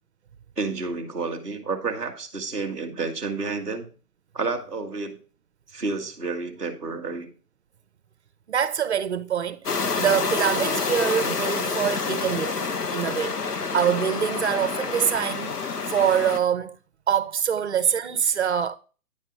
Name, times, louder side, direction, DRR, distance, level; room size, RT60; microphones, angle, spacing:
voice 1, 0.6-3.9 4.3-5.2 5.7-7.3, right 4 dB, 5° left, 0.6 m, -30 dB
voice 2, 8.5-16.8 17.1-18.8, right 8 dB, 45° right, 0.7 m, -25 dB
sound 1, 9.7-16.4, left 4 dB, 85° left, 1.1 m, -28 dB
9.8 x 3.9 x 4.7 m
figure-of-eight pair, 150°, 46 cm